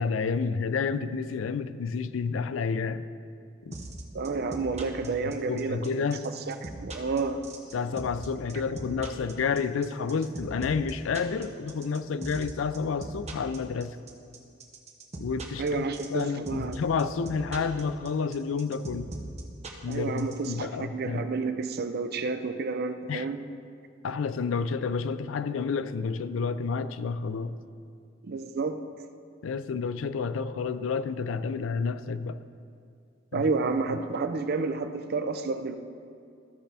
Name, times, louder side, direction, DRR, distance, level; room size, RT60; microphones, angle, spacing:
voice 1, 0.0-3.0 3.7-3.8 5.5-6.3 7.7-14.0 15.2-15.8 16.1-19.1 19.8-21.3 23.1-23.3 24.0-27.5 29.4-32.4 33.3-33.4, left 5 dB, 90° left, 13 dB, 0.4 m, -30 dB
sound 1, 3.7-20.5, right 2 dB, 35° right, 1.0 m, -39 dB
voice 2, 4.1-6.2 6.5-7.4 15.6-16.8 19.9-23.4 28.2-28.8 33.3-35.8, right 4 dB, 55° right, 9 dB, 0.5 m, -30 dB
14.5 x 6.0 x 3.4 m, 2.3 s
head